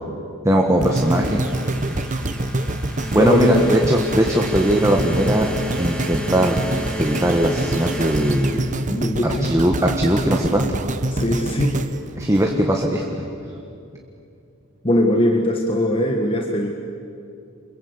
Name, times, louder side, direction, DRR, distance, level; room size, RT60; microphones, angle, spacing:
voice 1, 0.4-1.5 1.9-2.0 3.1-6.6 7.0-8.7 9.2-10.6 12.2-13.1, right 1 dB, 15° right, 1 dB, 1.7 m, -19 dB
sound 1, 0.8-9.2, equal, 5° left, 2.5 m, -33 dB
sound 2, 0.8-13.0 13.6-13.7, right 2 dB, 35° right, 1.0 m, -26 dB
voice 2, 3.2-3.6 8.9-9.5 11.1-11.8 14.8-16.7, left 1 dB, 25° left, 2 dB, 1.6 m, -20 dB
28.5 x 22.5 x 8.2 m, 2.6 s
head